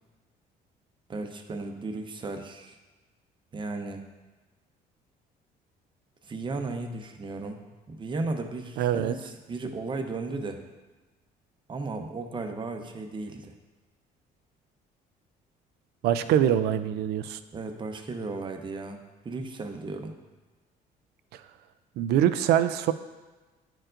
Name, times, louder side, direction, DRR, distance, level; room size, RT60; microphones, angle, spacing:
voice 1, 1.1-2.8 3.5-4.1 6.2-7.6 7.9-10.6 11.7-13.5 16.2-16.3 16.6-16.9 17.5-20.1, right 3 dB, 30° right, 5 dB, 0.7 m, -35 dB
voice 2, 8.8-9.1 16.0-17.4 21.3-21.4 22.0-22.9, right 10 dB, 75° right, 11 dB, 0.4 m, -24 dB
10.0 x 4.5 x 2.5 m, 1.2 s
cardioid pair, 110°, 17 cm